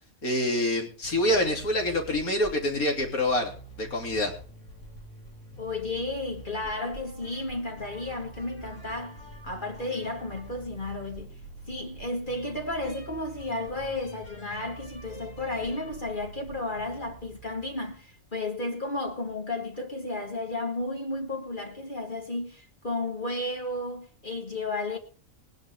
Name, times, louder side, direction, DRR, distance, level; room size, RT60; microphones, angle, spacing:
voice 1, 0.2-3.5 3.8-4.3, left 1 dB, 85° left, 3.6 m, -26 dB
sound 1, 1.0-18.3, right 3 dB, 60° left, 2.9 m, -46 dB
voice 2, 5.6-11.3 11.7-25.0, left 2 dB, 35° left, 2.1 m, -33 dB
20.5 x 10.5 x 3.6 m
omnidirectional pair, 1.5 m